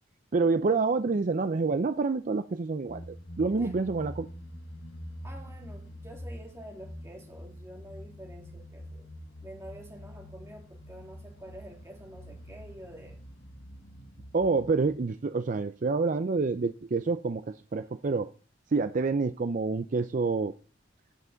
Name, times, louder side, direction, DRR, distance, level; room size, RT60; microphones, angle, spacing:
voice 1, 0.3-4.3 14.3-18.3 18.7-20.5, right 4 dB, 45° right, 0.5 m, -27 dB
sound 1, 2.9-15.0, equal, 65° left, 1.7 m, -45 dB
voice 2, 5.2-9.1 9.4-13.2, equal, 15° right, 2.2 m, -47 dB
16.5 x 5.9 x 3.9 m
head